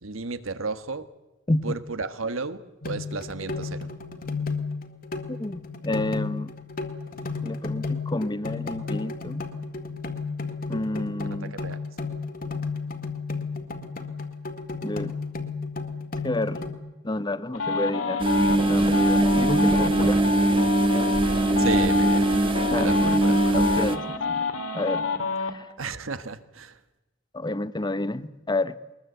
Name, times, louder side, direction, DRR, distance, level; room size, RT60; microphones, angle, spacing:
voice 1, 0.0-1.1 1.6-3.9 11.4-11.8 21.6-22.3 22.7-23.7 25.8-26.8, right 4 dB, 90° right, 12 dB, 1.4 m, -33 dB
sound 1, 2.8-16.7, left 4 dB, 45° left, 2.1 m, -33 dB
voice 2, 5.3-6.5 7.4-9.4 10.7-11.5 14.8-15.1 16.2-16.6 17.0-20.2 22.7-23.2 23.5-24.5 24.7-25.1 25.4-25.7 27.3-28.8, left 2 dB, 20° left, 15 dB, 0.8 m, -29 dB
sound 2, 17.5-25.5, left 4 dB, 85° left, 2.5 m, -28 dB
sound 3, 18.2-24.0, right 2 dB, 25° right, 1.3 m, -21 dB
22.0 x 20.5 x 8.0 m, 1.0 s
head